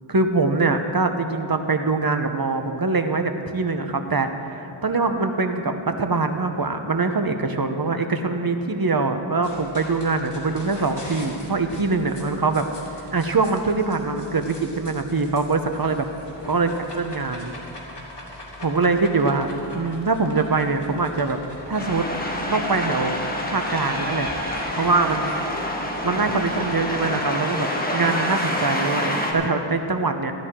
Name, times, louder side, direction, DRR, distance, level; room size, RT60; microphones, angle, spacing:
voice 1, 0.1-12.7 13.1-16.1 16.5-17.5 18.6-21.4 21.7-22.1 22.4-23.2 23.5-24.3 24.8-25.3 26.0-30.3, right 3 dB, 45° right, 7 dB, 0.9 m, -23 dB
sound 1, 9.4-27.1, left 1 dB, 55° left, 2.6 m, -41 dB
sound 2, 21.8-29.3, left 1 dB, 20° left, 1.6 m, -27 dB
Laughter, 23.6-26.9, equal, 20° right, 1.9 m, -39 dB
14.0 x 13.5 x 3.7 m, 2.7 s
wide cardioid pair, 45°, 50 cm